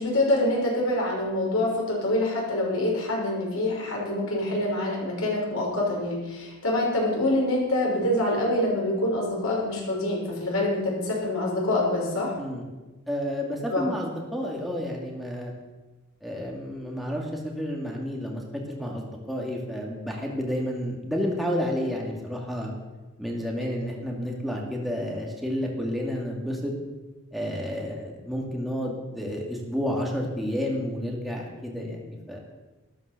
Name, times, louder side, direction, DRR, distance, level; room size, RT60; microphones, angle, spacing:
voice 1, 0.0-12.3 13.7-13.8 23.6-23.9, left 1 dB, 75° left, -3 dB, 5.7 m, -26 dB
voice 2, 13.1-15.5 16.2-22.7 23.2-26.7 27.3-32.4, equal, ahead, -2 dB, 2.3 m, -30 dB
13.0 x 11.0 x 6.7 m, 1.2 s
head